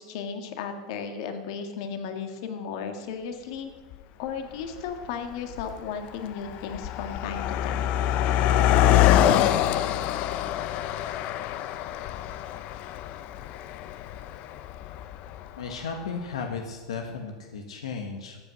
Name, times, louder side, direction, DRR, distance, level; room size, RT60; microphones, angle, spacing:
voice 1, 0.0-3.7 4.2-7.9, left 6 dB, 65° left, 6 dB, 1.8 m, -35 dB
Car passing by, 3.9-4.0 4.8-5.0 5.3-15.7, left 11 dB, 50° left, 0.7 m, -25 dB
voice 2, 15.6-18.4, left 5 dB, 90° left, 4 dB, 1.4 m, -35 dB
13.5 x 8.3 x 6.4 m, 1.4 s
supercardioid pair, 120°, 3 cm